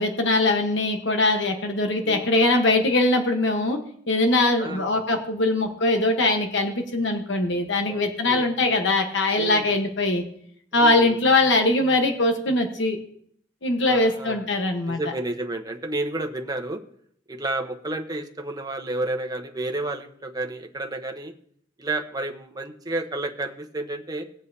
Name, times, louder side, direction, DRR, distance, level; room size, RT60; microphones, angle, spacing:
voice 1, 0.0-3.8 4.1-10.2 10.7-13.0 13.6-15.0, left 2 dB, 75° left, 4 dB, 1.2 m, -22 dB
voice 2, 2.0-2.5 4.6-5.0 7.9-8.5 9.4-9.7 10.7-11.2 13.8-14.5 14.9-16.8 17.3-21.3 21.8-24.3, right 2 dB, 20° right, 4 dB, 1.0 m, -31 dB
19.5 x 7.3 x 2.8 m, 0.65 s
head